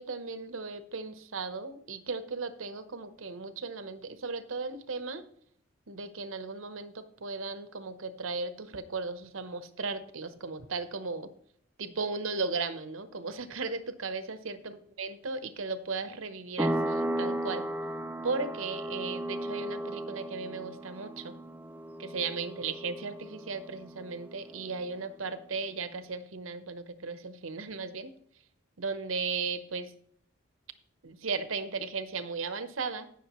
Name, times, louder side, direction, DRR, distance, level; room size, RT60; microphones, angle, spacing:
voice 1, 0.0-5.2 5.9-11.3 11.8-17.7 18.2-21.3 22.0-28.1 28.8-29.9 31.0-33.1, right 4 dB, 90° right, 11 dB, 1.0 m, -36 dB
sound 1, 16.6-24.9, right 1 dB, 10° right, 0.4 m, -35 dB
18.0 x 6.4 x 3.1 m, 0.64 s
head